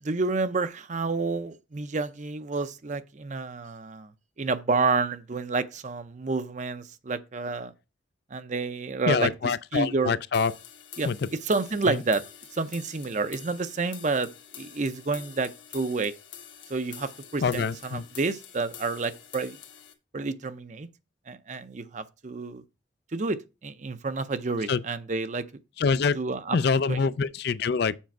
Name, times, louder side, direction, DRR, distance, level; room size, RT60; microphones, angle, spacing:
voice 1, 0.0-4.1 4.4-7.7 8.3-9.3 9.7-10.2 11.0-12.2 12.5-14.3 14.6-16.1 16.7-19.6 20.1-20.9 21.3-22.6 23.1-25.5 26.1-27.0, right 3 dB, 40° right, 0.6 m, -29 dB
voice 2, 9.1-10.5 11.0-11.2 11.9-12.0 17.4-18.0 24.7-24.8 25.8-26.2 26.5-28.0, left 5 dB, 60° left, 0.4 m, -25 dB
sound 1, 10.3-19.9, left 9 dB, 80° left, 1.3 m, -47 dB
7.3 x 5.1 x 4.5 m
head